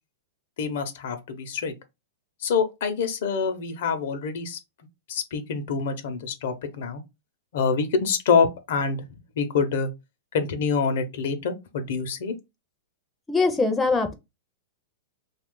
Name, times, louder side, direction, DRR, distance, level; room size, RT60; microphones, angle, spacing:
voice 1, 0.6-1.7 2.4-4.6 5.1-7.0 7.5-9.0 9.4-9.9 10.3-12.3, left 5 dB, 70° left, 0.7 m, -26 dB
voice 2, 13.3-14.1, left 3 dB, 10° left, 0.5 m, -22 dB
2.8 x 2.4 x 3.7 m
hypercardioid pair, 135°, 0 cm